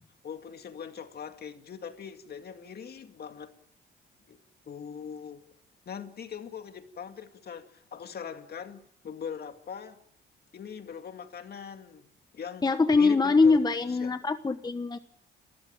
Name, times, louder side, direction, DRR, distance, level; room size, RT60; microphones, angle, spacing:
voice 1, 0.2-3.5 4.3-4.4 4.7-5.4 5.9-10.0 10.5-12.1 12.3-12.7 12.9-14.1, left 7 dB, 55° left, 2.3 m, -41 dB
voice 2, 12.6-15.0, left 4 dB, 20° left, 1.2 m, -23 dB
29.0 x 14.5 x 8.9 m
cardioid pair, 90°, 20 cm